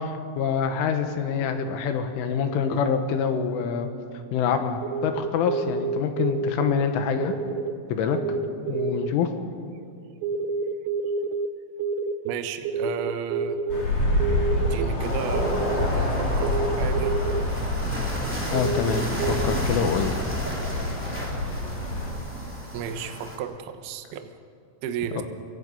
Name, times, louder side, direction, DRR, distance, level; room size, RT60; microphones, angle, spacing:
voice 1, 0.0-3.9 4.3-7.3 7.9-8.4 8.7-9.3 18.5-19.1 19.4-20.2 25.2-25.3, left 7 dB, 80° left, 7 dB, 3.8 m, -26 dB
sound 1, 4.8-6.8 7.2-7.7 8.1-9.1 10.2-11.5 11.8-13.8 14.1-14.9 15.3-15.9 16.4-17.4 18.0-19.6, right 5 dB, 90° right, 3.4 m, -28 dB
voice 2, 12.2-13.6 14.7-17.2 22.7-24.3 24.8-25.2, right 8 dB, 70° right, 7 dB, 2.6 m, -33 dB
sound 2, 13.7-22.1, left 1 dB, 35° left, 4.9 m, -27 dB
sound 3, 15.0-23.4, equal, 5° right, 2.5 m, -34 dB
29.5 x 23.0 x 5.6 m, 2.4 s
omnidirectional pair, 5.7 m